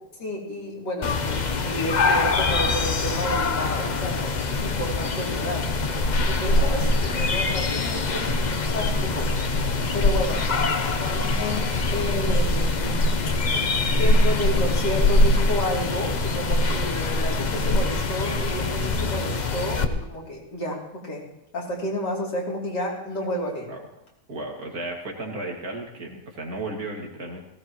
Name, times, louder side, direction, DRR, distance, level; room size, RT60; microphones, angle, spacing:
voice 1, 0.2-5.7 6.3-8.3 8.7-9.3 9.6-10.4 11.0-13.1 13.9-21.3 21.5-23.7, equal, 80° left, -3 dB, 3.7 m, -31 dB
sound 1, 1.0-19.8, left 2 dB, 45° left, 0.6 m, -23 dB
voice 2, 6.5-7.3 10.7-11.0 23.7-23.8 24.3-27.4, right 2 dB, 55° right, 0 dB, 2.6 m, -35 dB
18.0 x 16.5 x 3.1 m, 0.90 s
omnidirectional pair, 1.9 m